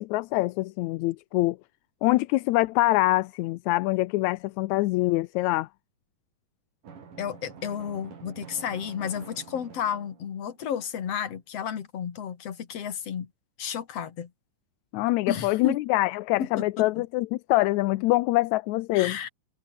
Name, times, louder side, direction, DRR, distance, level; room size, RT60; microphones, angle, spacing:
voice 1, 0.0-1.6 2.0-5.7 14.9-19.2, left 19 dB, 80° left, 1.8 m, -24 dB
Drum, 6.8-10.6, right 6 dB, 75° right, 5.5 m, -47 dB
voice 2, 7.2-13.3 13.6-14.3 15.3-15.8 16.4-17.0 18.9-19.3, left 8 dB, 50° left, 2.9 m, -32 dB
omnidirectional pair, 3.7 m